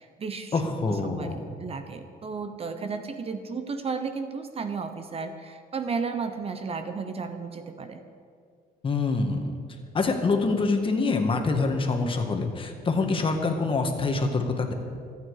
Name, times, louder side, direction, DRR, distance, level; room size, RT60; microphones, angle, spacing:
voice 1, 0.0-1.3 1.6-8.0, right 5 dB, 35° right, 8 dB, 1.1 m, -33 dB
voice 2, 0.5-1.4 8.8-9.5 9.9-14.7, left 3 dB, 30° left, 4 dB, 1.8 m, -25 dB
26.5 x 9.3 x 4.9 m, 2.2 s
cardioid pair, 110°, 17 cm